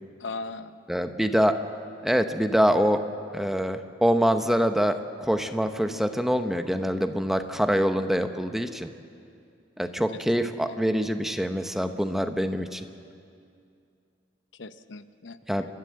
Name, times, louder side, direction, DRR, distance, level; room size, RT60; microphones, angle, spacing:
voice 1, 0.2-0.8 5.9-6.0 7.7-8.0 10.4-10.8 14.6-15.4, left 3 dB, 75° left, 11 dB, 0.8 m, -39 dB
voice 2, 0.9-1.6 2.0-3.0 3.3-8.9 9.8-12.8 15.5-15.6, equal, ahead, 7 dB, 0.8 m, -25 dB
29.5 x 13.5 x 7.6 m, 2.4 s
head